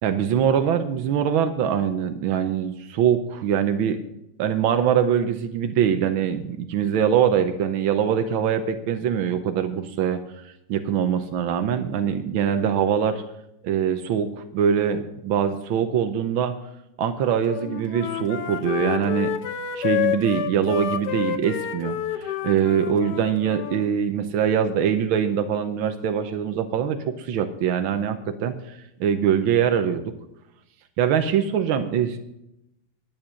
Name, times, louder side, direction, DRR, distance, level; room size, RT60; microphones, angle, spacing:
voice 1, 0.0-4.0 4.4-13.2 13.6-16.5 17.0-19.4 19.7-30.1 31.0-32.2, right 8 dB, 90° right, 8 dB, 1.6 m, -23 dB
Wind instrument woodwind instrument, 17.5-23.9, left 9 dB, 60° left, 1.3 m, -29 dB
11.5 x 8.9 x 6.3 m, 0.85 s
omnidirectional pair, 2.1 m